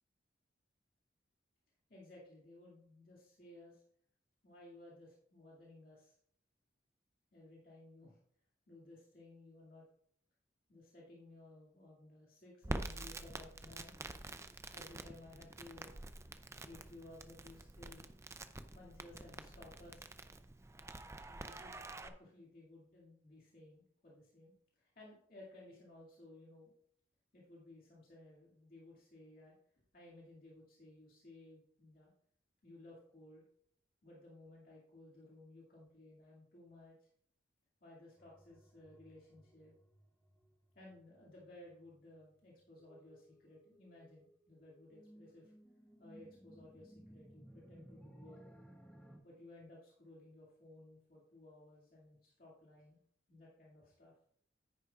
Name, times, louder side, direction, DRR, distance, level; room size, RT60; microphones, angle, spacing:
voice 1, 1.9-3.8 4.4-6.2 7.3-8.2 8.7-9.8 10.7-13.9 14.7-15.9 16.6-18.1 18.7-20.1 21.3-26.7 27.3-29.5 29.9-32.1 32.6-33.4 34.0-37.1 37.8-39.7 40.7-45.5 46.0-48.4 49.2-53.0 53.3-54.1, left 2 dB, 50° left, -5 dB, 2.2 m, -58 dB
Crackle, 12.6-22.1, right 2 dB, 15° right, 0.4 m, -47 dB
sound 1, 38.2-49.2, right 1 dB, 5° left, 1.4 m, -61 dB
9.8 x 9.6 x 2.4 m, 0.64 s
head